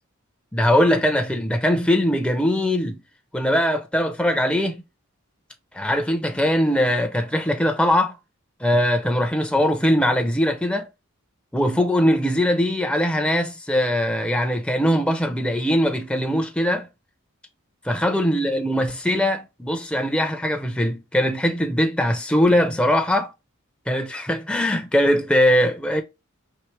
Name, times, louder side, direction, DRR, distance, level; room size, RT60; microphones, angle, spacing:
voice 1, 0.5-3.0 3.3-4.8 5.7-8.1 8.6-10.9 11.5-16.9 17.8-23.3 23.9-26.0, equal, 5° left, 0.5 m, -21 dB
4.6 x 3.2 x 3.0 m
head